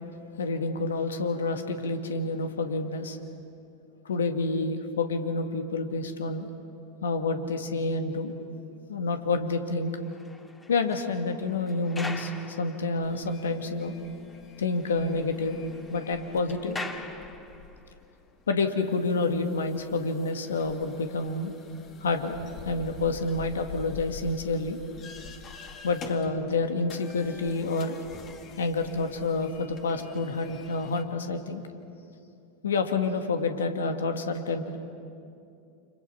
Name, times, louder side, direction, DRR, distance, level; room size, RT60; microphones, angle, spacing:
voice 1, 0.4-3.2 4.1-6.5 7.0-8.3 8.9-9.9 10.7-13.9 14.6-15.6 15.9-16.8 18.5-21.5 22.0-22.4 22.6-24.8 25.8-28.0 28.6-31.6 32.6-34.8, left 3 dB, 80° left, 6 dB, 1.9 m, -28 dB
sound 1, 9.8-13.5 13.8-13.9 14.3-14.4 14.7-17.9 18.6-18.8, left 2 dB, 15° left, 2.1 m, -43 dB
sound 2, 13.0-31.0, left 6 dB, 40° left, 2.2 m, -47 dB
29.0 x 27.0 x 5.8 m, 2.6 s
hypercardioid pair, 90°, 0 cm